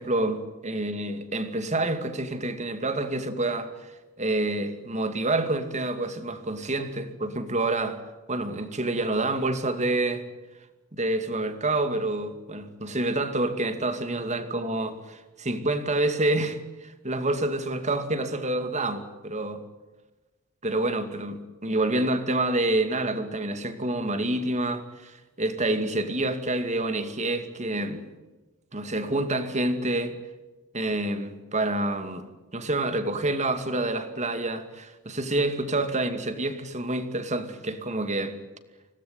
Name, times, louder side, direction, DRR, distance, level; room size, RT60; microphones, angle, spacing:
voice 1, 0.0-3.9 4.2-8.0 8.3-10.2 10.9-19.6 20.6-28.0 28.7-30.1 30.7-32.3 32.5-38.4, right 2 dB, 35° right, 9 dB, 2.5 m, -28 dB
26.0 x 18.5 x 9.7 m, 1.2 s
head